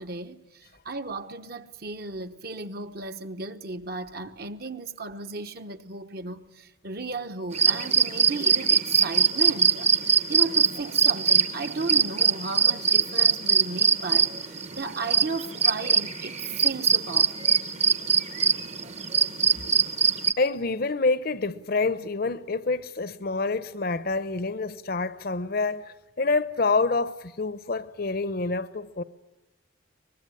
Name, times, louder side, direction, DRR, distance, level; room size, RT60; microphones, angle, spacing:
voice 1, 0.0-17.5, right 3 dB, 50° right, 1.1 m, -35 dB
sound 1, 7.5-20.3, right 6 dB, 35° right, 1.0 m, -23 dB
voice 2, 20.4-29.0, left 3 dB, 50° left, 0.8 m, -27 dB
23.5 x 20.5 x 9.6 m
head